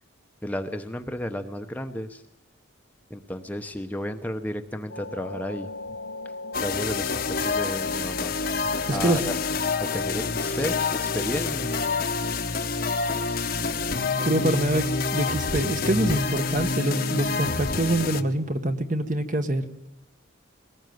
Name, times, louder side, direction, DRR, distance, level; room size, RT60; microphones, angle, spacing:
voice 1, 0.4-2.2 3.1-5.7 6.6-8.4 8.9-9.4 9.8-11.7 14.4-14.6, equal, 10° left, 6 dB, 1.0 m, -33 dB
sound 1, 4.9-16.4, left 2 dB, 75° left, 1.4 m, -41 dB
sound 2, 6.5-18.2, left 4 dB, 45° left, 1.1 m, -27 dB
voice 2, 8.9-9.2 14.2-14.8 15.1-19.6, right 1 dB, 40° right, 8 dB, 1.5 m, -25 dB
23.0 x 19.5 x 9.5 m, 0.91 s
head